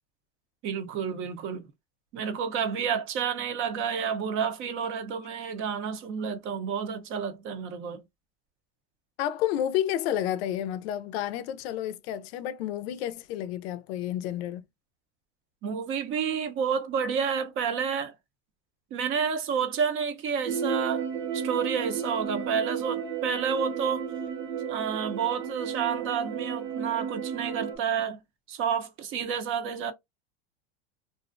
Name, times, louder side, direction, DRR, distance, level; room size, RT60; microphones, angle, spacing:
voice 1, 0.6-1.7 2.1-8.0 15.6-18.1 18.9-21.1 21.3-24.1 24.6-28.2 28.5-29.9, right 7 dB, 40° right, 0.6 m, -30 dB
voice 2, 9.2-14.6, left 11 dB, 80° left, 0.5 m, -30 dB
sound 1, 20.4-27.8, right 7 dB, 75° right, 1.0 m, -33 dB
2.5 x 2.0 x 2.4 m
supercardioid pair, 130°, 31 cm